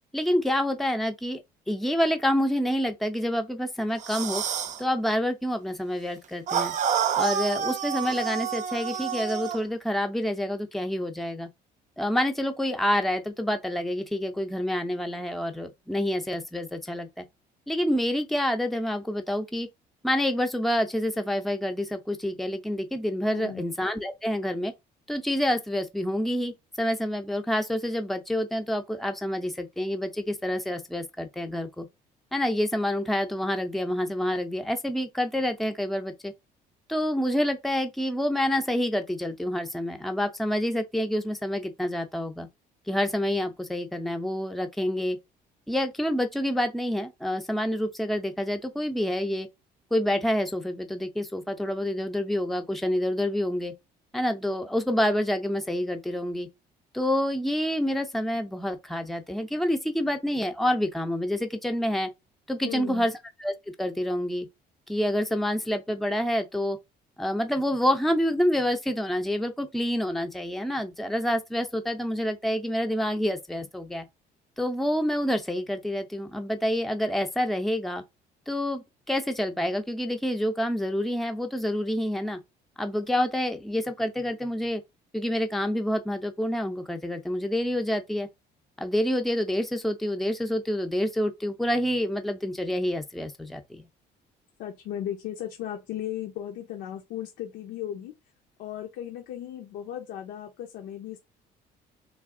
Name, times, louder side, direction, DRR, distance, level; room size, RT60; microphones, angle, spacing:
voice 1, 0.1-1.4 1.7-4.4 4.8-6.7 7.2-11.5 12.0-17.2 17.7-19.7 20.0-24.7 25.1-31.9 32.3-36.3 36.9-42.5 42.9-45.2 45.7-49.5 49.9-53.7 54.1-56.5 56.9-62.1 62.5-63.1 63.4-64.5 64.9-66.8 67.2-74.1 74.6-78.0 78.5-82.4 82.8-84.8 85.1-88.3 88.8-93.8, equal, ahead, 0.6 m, -27 dB
sound 1, 4.0-4.8 6.5-9.6, right 8 dB, 45° right, 0.5 m, -28 dB
voice 2, 23.3-23.6 62.6-63.1 94.6-98.1 98.6-101.2, left 11 dB, 85° left, 0.8 m, -36 dB
3.4 x 2.6 x 3.7 m
cardioid pair, 110°, 17 cm